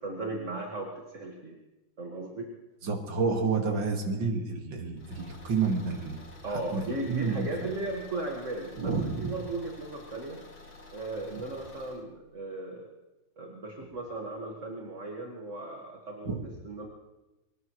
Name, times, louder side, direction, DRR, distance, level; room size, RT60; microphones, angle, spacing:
voice 1, 0.0-1.6 2.0-2.5 6.4-10.4 10.9-12.9 13.4-16.3 16.6-16.9, right 2 dB, 35° right, 0 dB, 1.9 m, -36 dB
voice 2, 2.8-6.2 6.5-7.5 8.8-9.3 16.3-16.4, right 4 dB, 60° right, 3 dB, 2.6 m, -30 dB
Car / Engine, 5.0-12.0, left 3 dB, 65° left, 3.2 m, -51 dB
23.5 x 19.5 x 3.1 m, 1.0 s
omnidirectional pair, 2.4 m